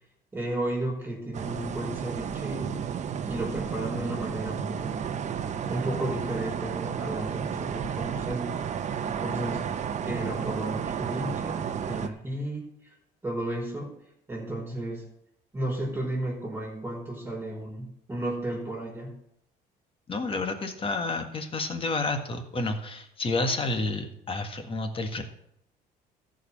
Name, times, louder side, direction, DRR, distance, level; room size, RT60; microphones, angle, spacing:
voice 1, 0.3-2.8 3.3-5.0 5.7-8.6 9.2-9.8 10.0-12.7 13.2-13.9 14.3-15.0 15.5-19.2, right 1 dB, 15° right, -3 dB, 4.8 m, -33 dB
sound 1, 1.3-12.1, right 7 dB, 45° right, 0.9 m, -32 dB
voice 2, 20.1-25.2, left 2 dB, 30° left, 6 dB, 1.7 m, -30 dB
14.0 x 5.2 x 7.3 m, 0.76 s
cardioid pair, 110°, 17 cm